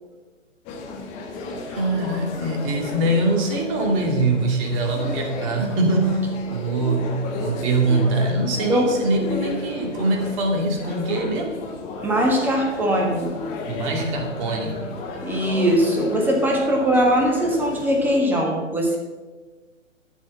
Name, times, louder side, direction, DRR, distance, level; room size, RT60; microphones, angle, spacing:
sound 1, 0.7-18.2, left 3 dB, 20° left, 1.3 m, -33 dB
voice 1, 1.7-11.6 13.7-14.8, right 2 dB, 25° right, 2 dB, 2.2 m, -23 dB
voice 2, 8.7-9.0 12.0-13.4 15.2-19.0, equal, 5° right, 1 dB, 1.4 m, -21 dB
12.0 x 6.3 x 7.5 m, 1.3 s
figure-of-eight pair, 135°, 39 cm